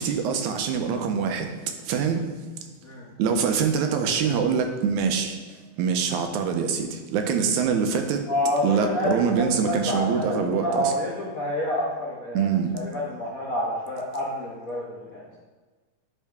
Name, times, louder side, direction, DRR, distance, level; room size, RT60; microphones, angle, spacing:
voice 1, 0.0-1.5 1.8-2.3 3.2-5.4 5.8-8.3 8.6-10.9 12.3-12.7, right 6 dB, 85° right, 5 dB, 2.1 m, -24 dB
voice 2, 8.3-15.4, left 1 dB, 70° left, -6 dB, 0.8 m, -28 dB
9.9 x 3.7 x 3.4 m, 1.3 s
omnidirectional pair, 3.4 m